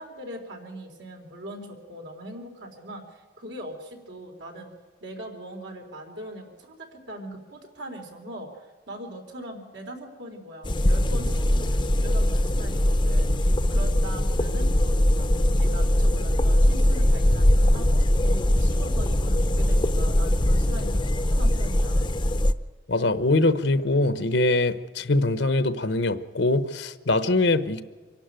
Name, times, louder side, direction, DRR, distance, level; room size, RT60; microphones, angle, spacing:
voice 1, 0.0-4.7 5.0-15.3 15.6-22.1, right 1 dB, 75° right, 2 dB, 3.9 m, -41 dB
sound 1, 10.6-22.5, left 1 dB, 25° left, 0.7 m, -21 dB
voice 2, 22.9-27.8, left 2 dB, 75° left, 12 dB, 1.0 m, -23 dB
25.5 x 12.0 x 9.1 m, 1.5 s
head